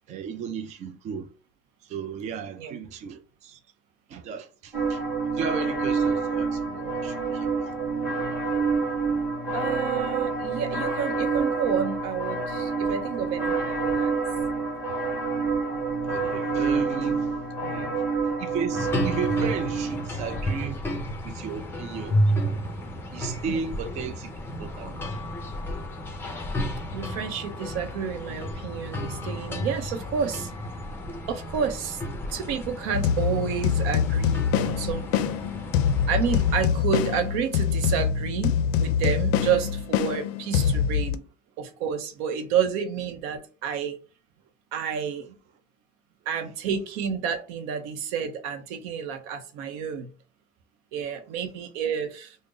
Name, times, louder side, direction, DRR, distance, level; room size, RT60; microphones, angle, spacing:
voice 1, 0.1-1.3 1.8-3.6 4.1-5.0 5.3-7.7 15.1-15.4 16.1-17.4 17.8-18.1 18.4-20.9 21.2-22.2 23.1-24.3 24.6-25.2, right 6 dB, 35° right, 0.4 m, -35 dB
sound 1, 4.7-20.7, right 4 dB, 10° right, 1.6 m, -27 dB
voice 2, 9.5-14.1 17.6-18.0 23.5-23.6 26.9-30.5 31.3-32.0 32.3-35.4 36.1-41.2 41.6-44.0 44.7-45.4 46.3-50.1 50.9-52.4, right 7 dB, 80° right, 0.7 m, -30 dB
sound 2, 18.7-36.6, equal, 10° left, 0.6 m, -32 dB
sound 3, 32.9-41.2, left 8 dB, 85° left, 0.4 m, -25 dB
3.7 x 2.0 x 3.8 m
cardioid pair, 150°, 20 cm